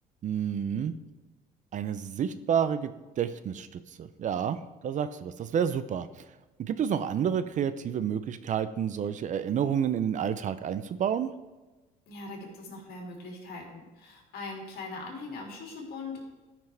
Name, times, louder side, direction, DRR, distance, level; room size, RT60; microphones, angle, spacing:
voice 1, 0.2-1.0 1.7-2.9 3.2-6.1 6.6-11.3, right 8 dB, 50° right, 13 dB, 0.5 m, -29 dB
voice 2, 12.1-16.2, left 3 dB, 65° left, 0 dB, 2.7 m, -41 dB
13.5 x 5.9 x 3.4 m, 1.2 s
cardioid pair, 110°, 17 cm